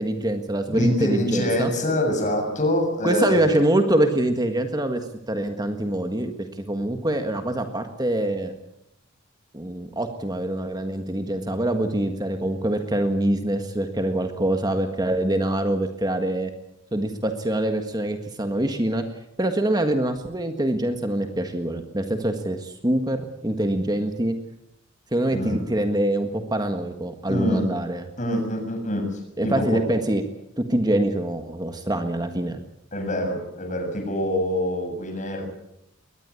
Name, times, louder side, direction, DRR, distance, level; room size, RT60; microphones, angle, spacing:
voice 1, 0.0-1.7 3.0-5.0 5.3-8.6 9.5-16.5 16.9-19.0 19.4-24.4 25.1-28.1 29.4-30.2 30.6-32.6, right 1 dB, 20° right, 6 dB, 1.7 m, -24 dB
voice 2, 0.7-3.5 25.3-25.6 27.3-27.7 28.2-29.8 32.9-35.4, left 1 dB, 40° left, 4 dB, 7.3 m, -25 dB
22.0 x 20.0 x 8.5 m, 0.82 s
head